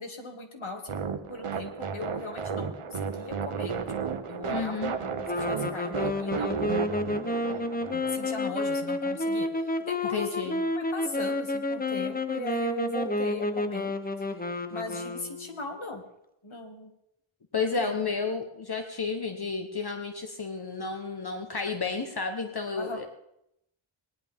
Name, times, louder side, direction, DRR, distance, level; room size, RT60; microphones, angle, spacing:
voice 1, 0.0-6.8 7.9-13.9 14.3-14.4 14.7-16.0 16.4-16.9 17.5-18.0 22.8-23.1, left 2 dB, 70° left, 2 dB, 2.3 m, -39 dB
sound 1, 0.9-8.3, right 6 dB, 85° right, 1.0 m, -33 dB
voice 2, 4.5-4.9 10.0-10.6 17.5-23.1, left 4 dB, 50° left, 5 dB, 1.2 m, -31 dB
sound 2, 5.3-15.7, left 2 dB, 20° left, 0.9 m, -30 dB
18.5 x 11.0 x 3.6 m, 0.79 s
wide cardioid pair, 65°, 49 cm